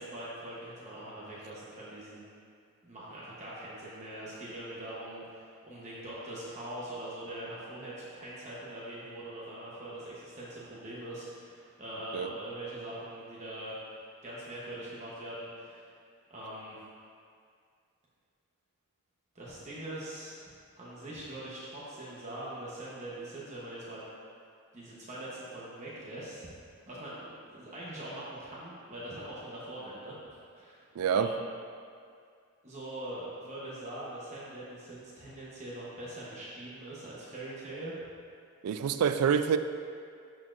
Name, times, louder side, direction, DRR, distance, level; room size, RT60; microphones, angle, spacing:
voice 1, 0.0-2.2 2.8-15.9 16.3-16.8 19.3-24.1 24.7-26.5 26.9-30.2 30.5-31.5 32.6-38.0, right 1 dB, 30° right, -8 dB, 1.0 m, -42 dB
voice 2, 31.0-31.3 38.6-39.6, right 7 dB, 85° right, 10 dB, 0.3 m, -26 dB
12.0 x 4.4 x 2.6 m, 2.2 s
head